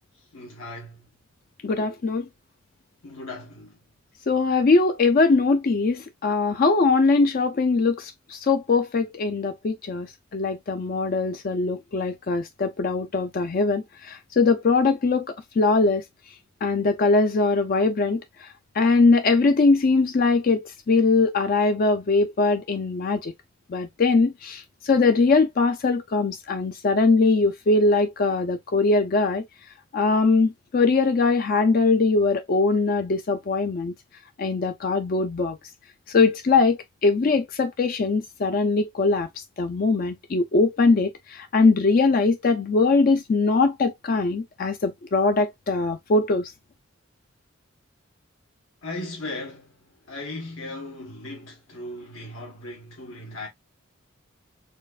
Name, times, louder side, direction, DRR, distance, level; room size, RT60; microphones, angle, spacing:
voice 1, 0.1-1.1 3.0-3.8 48.8-53.5, left 2 dB, 80° left, 1.3 m, -37 dB
voice 2, 1.6-2.3 4.3-16.0 16.6-18.5 18.8-23.3 23.7-29.4 29.9-33.9 34.4-35.6 36.1-39.3 39.6-46.5, left 3 dB, 45° left, 0.4 m, -21 dB
4.4 x 2.4 x 2.4 m
head